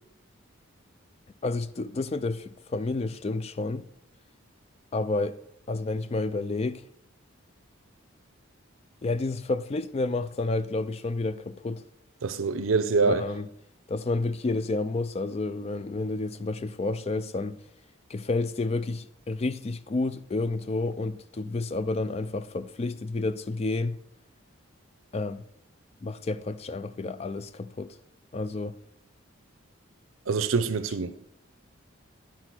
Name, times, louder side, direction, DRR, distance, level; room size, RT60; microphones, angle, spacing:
voice 1, 1.4-3.9 4.9-5.4 5.7-6.8 9.0-11.8 13.1-13.5 13.9-17.6 18.1-24.0 25.1-25.4 26.0-27.9 28.3-28.8, left 3 dB, 30° left, 0.3 m, -30 dB
voice 2, 12.2-13.3 30.3-31.3, right 4 dB, 80° right, 0.6 m, -25 dB
9.8 x 4.4 x 6.0 m
head